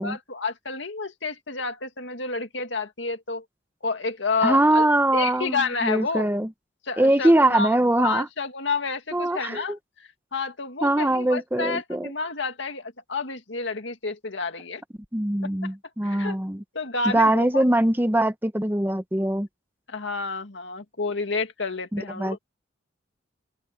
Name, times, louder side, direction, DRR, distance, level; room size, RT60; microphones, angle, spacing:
voice 1, 0.0-3.4 3.8-4.9 5.1-6.3 6.9-7.7 8.0-9.8 10.3-14.8 15.6-15.7 16.0-16.4 16.7-17.7 19.9-22.4, left 4 dB, 65° left, 2.2 m, -30 dB
voice 2, 4.4-6.5 7.0-8.3 9.1-9.8 10.8-12.1 15.1-16.6 17.1-19.5 21.9-22.4, right 1 dB, 10° right, 0.8 m, -22 dB
open air
head